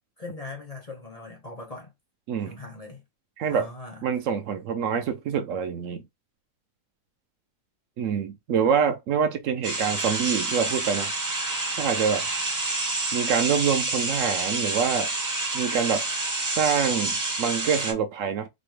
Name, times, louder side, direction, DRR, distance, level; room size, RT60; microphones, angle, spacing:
voice 1, 0.2-1.9 2.4-3.0 3.5-4.1, left 3 dB, 35° left, 0.6 m, -40 dB
voice 2, 4.0-6.0 8.0-11.1 11.8-12.3 13.1-15.1 15.5-16.0 16.6-18.5, right 7 dB, 70° right, 0.8 m, -26 dB
sound 1, 9.6-17.9, right 2 dB, 20° right, 0.5 m, -28 dB
4.1 x 2.1 x 3.1 m
omnidirectional pair, 1.7 m